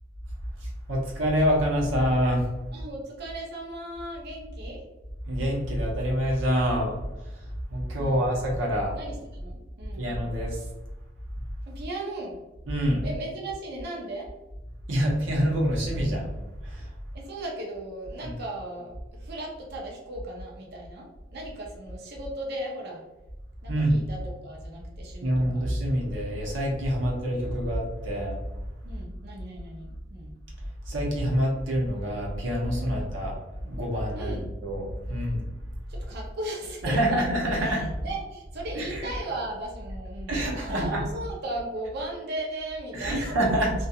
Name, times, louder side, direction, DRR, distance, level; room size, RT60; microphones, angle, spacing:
voice 1, 0.9-2.4 5.3-7.0 7.7-8.9 10.0-10.6 12.7-13.0 14.9-16.3 16.6-16.8 18.2-18.3 23.7-24.0 25.2-28.3 30.9-35.4 36.8-37.8 38.8-39.0 40.3-41.0 42.9-43.7, equal, 85° right, -2 dB, 0.8 m, -26 dB
voice 2, 2.7-4.8 8.0-8.2 8.9-10.0 11.7-12.4 13.0-14.3 17.1-23.0 23.6-25.6 28.8-30.3 32.8-33.1 34.1-34.4 35.9-43.4, right 1 dB, 55° right, -1 dB, 0.5 m, -37 dB
2.7 x 2.3 x 2.3 m, 1.0 s
head